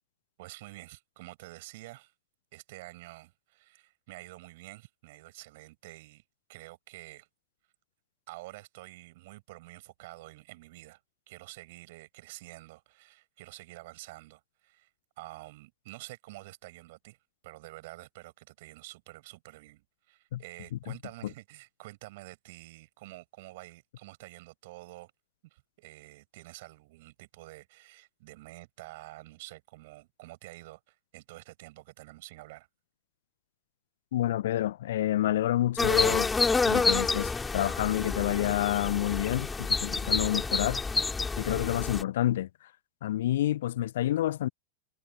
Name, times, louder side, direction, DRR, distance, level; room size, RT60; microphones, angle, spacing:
voice 1, 0.4-2.1 2.5-6.2 6.5-7.3 8.3-11.0 11.3-14.9 15.2-17.2 17.4-25.1 25.4-32.7, right 20 dB, 50° right, 7.6 m, -48 dB
voice 2, 34.1-36.3 36.7-40.8 41.4-42.7 43.0-44.5, left 13 dB, 60° left, 0.9 m, -28 dB
sound 1, 35.8-42.0, left 4 dB, 10° left, 2.4 m, -28 dB
figure-of-eight pair, 90°, 0 cm